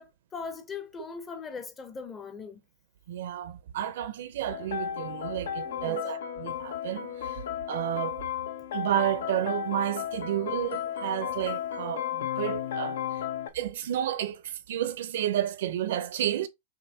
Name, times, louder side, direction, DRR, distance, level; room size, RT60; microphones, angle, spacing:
voice 1, 0.0-2.6 5.6-6.0, left 5 dB, 15° left, 0.6 m, -40 dB
voice 2, 3.1-7.4 7.7-8.2 8.7-13.0 13.5-16.5, right 11 dB, 65° right, 0.6 m, -31 dB
sound 1, 4.5-13.5, left 9 dB, 85° left, 0.8 m, -34 dB
6.5 x 2.6 x 2.7 m
supercardioid pair, 170°, 0 cm